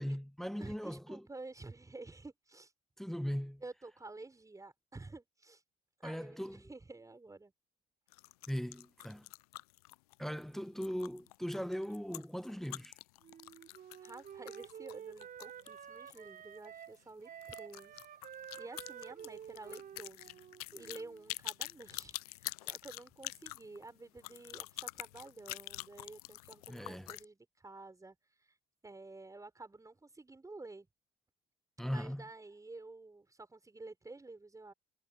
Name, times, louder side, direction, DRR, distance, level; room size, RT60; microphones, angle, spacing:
voice 1, 0.0-1.3 3.0-3.6 6.0-6.7 8.5-9.3 10.2-13.0 26.7-27.1 31.8-32.2, equal, ahead, 1.4 m, -39 dB
voice 2, 0.6-2.7 3.6-5.6 6.0-7.5 14.0-18.1 18.3-28.5 28.8-30.9 31.8-34.7, right 3 dB, 15° right, 6.0 m, -51 dB
sound 1, 8.1-16.3 16.6-16.7 16.9-17.0 17.4-27.3, left 19 dB, 80° left, 0.5 m, -46 dB
Wind instrument woodwind instrument, 13.2-21.2, right 9 dB, 45° right, 5.7 m, -50 dB
hypercardioid pair, 60°, 19 cm